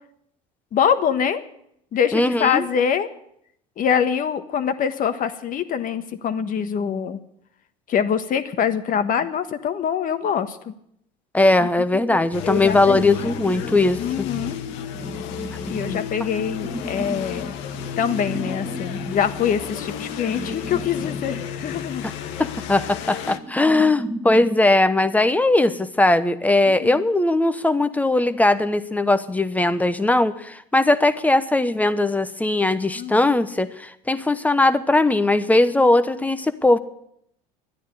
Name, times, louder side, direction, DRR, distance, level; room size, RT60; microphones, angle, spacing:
voice 1, 0.7-1.4 1.9-3.1 3.8-7.2 7.9-10.7 11.9-13.3 14.0-14.6 15.7-17.5 18.0-22.0 22.4-22.5 26.7-27.0 32.9-33.3, left 8 dB, 45° left, 11 dB, 1.4 m, -24 dB
voice 2, 2.1-2.7 11.3-14.3 15.8-16.0 22.4-36.8, left 2 dB, 10° left, 12 dB, 1.0 m, -19 dB
sound 1, 12.3-23.4, left 9 dB, 70° left, 1.0 m, -33 dB
sound 2, 13.2-24.6, right 1 dB, 10° right, 1.3 m, -36 dB
11.5 x 10.0 x 9.8 m, 0.73 s
supercardioid pair, 100°, 20 cm